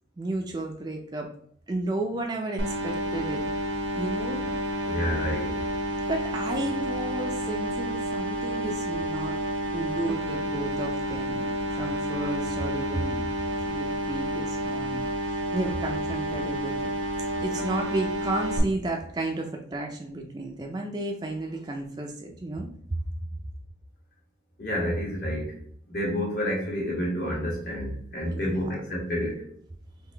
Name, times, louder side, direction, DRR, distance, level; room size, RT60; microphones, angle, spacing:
voice 1, 0.2-1.3 1.7-3.4 4.0-4.4 6.1-9.4 9.7-13.3 13.7-16.9 17.4-22.7 28.3-28.8, right 2 dB, 20° right, 1 dB, 0.4 m, -32 dB
sound 1, 2.6-18.6, equal, 80° right, 0.7 m, -30 dB
voice 2, 4.9-5.6 24.6-25.6 25.9-29.4, equal, 50° left, -3 dB, 1.2 m, -29 dB
3.6 x 2.7 x 3.3 m, 0.64 s
head